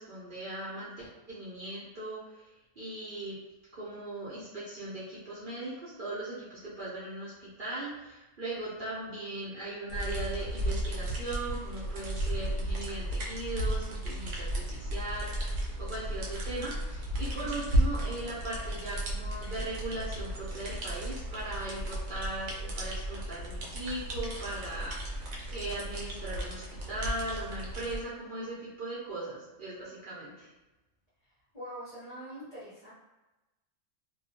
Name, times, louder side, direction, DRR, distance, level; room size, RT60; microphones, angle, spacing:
voice 1, 0.0-2.5 2.8-3.4 3.7-30.5, right 2 dB, 50° right, -9 dB, 0.7 m, -39 dB
sound 1, 9.9-28.0, right 1 dB, 75° right, 1.0 m, -34 dB
voice 2, 31.5-32.9, equal, 40° left, -10 dB, 0.7 m, -43 dB
2.3 x 2.2 x 2.7 m, 1.0 s
omnidirectional pair, 1.4 m